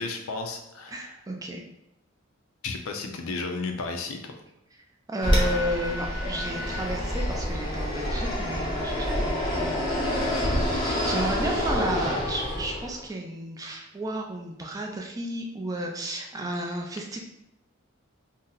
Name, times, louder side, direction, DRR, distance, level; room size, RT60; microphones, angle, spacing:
voice 1, 0.0-1.1 2.6-4.2, left 3 dB, 80° left, 4 dB, 0.5 m, -33 dB
voice 2, 0.9-1.6 5.1-10.3 10.8-17.2, right 1 dB, 15° right, 1 dB, 0.3 m, -33 dB
Fixed-wing aircraft airplane, 5.2-13.0, equal, 20° left, 0.6 m, -27 dB
2.7 x 2.1 x 3.8 m, 0.84 s
head